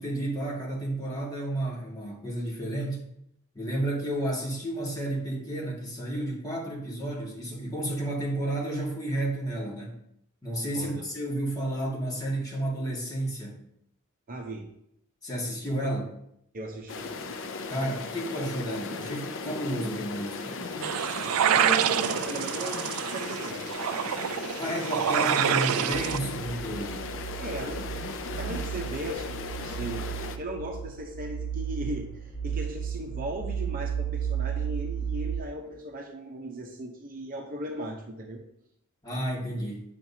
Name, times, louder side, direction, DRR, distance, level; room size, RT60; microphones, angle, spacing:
voice 1, 0.0-3.1 3.5-10.0 10.4-13.6 15.2-16.1 17.7-20.6 24.6-27.1 39.0-39.8, right 1 dB, 20° left, -4 dB, 2.0 m, -31 dB
voice 2, 10.7-11.0 14.3-14.7 16.5-17.3 21.4-24.0 27.4-27.9 28.4-30.1 30.4-38.4, right 1 dB, 40° right, 2 dB, 0.8 m, -37 dB
sound 1, 16.9-30.4, left 4 dB, 60° left, 0.6 m, -37 dB
sound 2, 20.8-26.2, right 9 dB, 70° right, 0.4 m, -27 dB
sound 3, 25.9-35.4, right 8 dB, 85° left, 1.4 m, -34 dB
9.1 x 5.9 x 2.8 m, 0.74 s
head